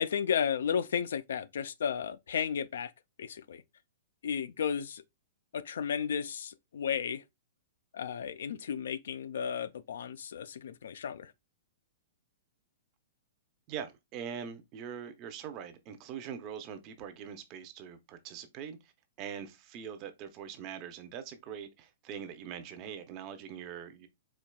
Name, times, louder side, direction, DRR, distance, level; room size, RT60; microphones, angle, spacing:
voice 1, 0.0-2.9 3.2-3.6 4.2-5.0 5.5-7.2 7.9-11.3, left 7 dB, 75° left, 0.3 m, -33 dB
voice 2, 13.7-18.9 19.2-24.1, right 8 dB, 30° right, 0.5 m, -43 dB
4.4 x 2.8 x 2.2 m
hypercardioid pair, 160°, 0 cm